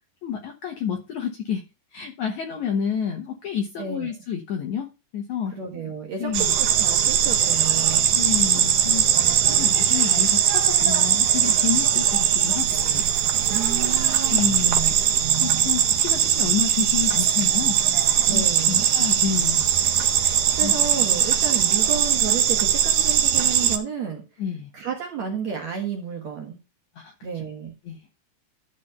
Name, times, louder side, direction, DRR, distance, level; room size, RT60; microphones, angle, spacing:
voice 1, 0.2-1.6 1.9-5.6 6.2-6.6 8.1-9.1 9.4-13.1 14.3-14.8 15.4-17.8 18.3-19.7 20.6-20.7 24.4-24.7 27.0-27.1 27.9-28.0, left 8 dB, 70° left, 2 dB, 1.9 m, -29 dB
voice 2, 3.8-4.1 5.5-8.5 8.8-9.7 13.5-15.7 18.3-18.9 20.5-24.2 24.7-26.6 27.2-27.7, right 6 dB, 60° right, 1 dB, 2.1 m, -32 dB
sound 1, 6.3-23.8, right 9 dB, 75° right, 1.8 m, -20 dB
12.0 x 4.2 x 5.5 m, 0.28 s
omnidirectional pair, 4.8 m